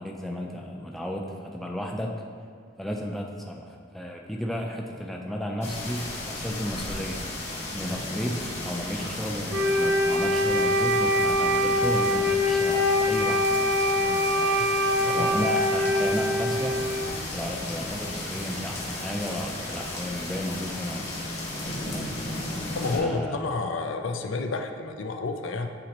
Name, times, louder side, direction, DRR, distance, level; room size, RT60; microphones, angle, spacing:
voice 1, 0.0-2.2 2.8-7.3 7.7-13.5 15.1-16.8 17.3-21.4 21.9-22.1 22.9-23.4, equal, ahead, 0 dB, 0.4 m, -33 dB
sound 1, 5.6-23.0, left 2 dB, 35° left, 1.2 m, -34 dB
Wind instrument woodwind instrument, 9.5-17.2, left 1 dB, 60° right, 0.7 m, -24 dB
voice 2, 15.0-15.3 22.6-25.7, left 3 dB, 75° left, 5 dB, 0.5 m, -30 dB
9.3 x 4.2 x 2.9 m, 2.1 s
head